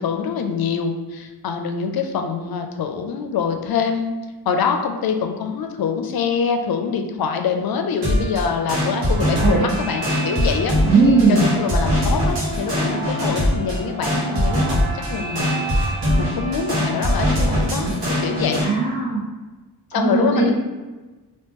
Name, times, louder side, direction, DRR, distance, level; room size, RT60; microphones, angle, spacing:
voice 1, 0.0-10.8 11.3-15.5 16.2-18.7 19.9-20.5, left 6 dB, 65° left, 5 dB, 0.5 m, -24 dB
sound 1, 8.0-18.7, equal, 80° right, 1.5 m, -22 dB
voice 2, 9.3-9.7 10.8-11.5 17.8-17.9 18.6-19.2 19.9-20.5, right 4 dB, 60° right, -9 dB, 1.3 m, -18 dB
2.9 x 2.9 x 3.5 m, 1.2 s
wide cardioid pair, 100°, 39 cm